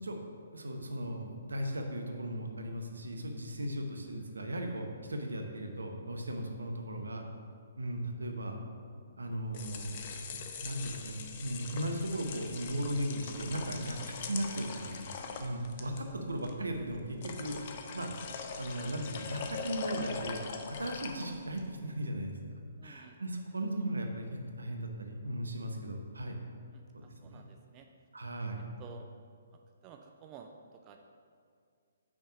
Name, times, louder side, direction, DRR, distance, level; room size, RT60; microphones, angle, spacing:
voice 1, 0.5-7.2 7.8-8.6 9.2-15.1 15.4-17.6 17.9-18.1 18.6-20.4 20.8-22.4 22.8-24.3 24.6-26.4 27.0-27.4 28.1-28.6, right 1 dB, 75° right, 3 dB, 0.8 m, -37 dB
sound 1, 9.3-21.7, left 5 dB, 40° left, 0.6 m, -42 dB
voice 2, 13.8-14.1 14.7-15.1 15.8-16.2 17.4-17.5 22.8-23.2 26.7-27.9 28.8-29.1 29.8-31.0, right 7 dB, 25° right, 3 dB, 0.4 m, -54 dB
6.0 x 4.5 x 5.0 m, 2.2 s
figure-of-eight pair, 130°, 0 cm